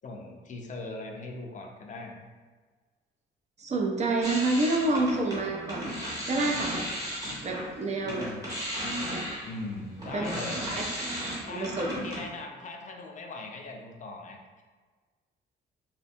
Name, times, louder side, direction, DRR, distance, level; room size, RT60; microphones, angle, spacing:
voice 1, 0.0-2.2 8.1-8.5 9.4-10.7 11.4-11.7 12.0-14.6, left 2 dB, 40° left, 1 dB, 0.4 m, -40 dB
voice 2, 3.6-5.9 6.3-6.7 7.4-8.3 10.1-10.3 11.5-12.0, right 2 dB, 35° right, 1 dB, 0.4 m, -28 dB
sound 1, 4.2-7.7 8.0-12.3, equal, 20° right, 0.9 m, -35 dB
2.6 x 2.1 x 2.6 m, 1.4 s
cardioid pair, 90°, 20 cm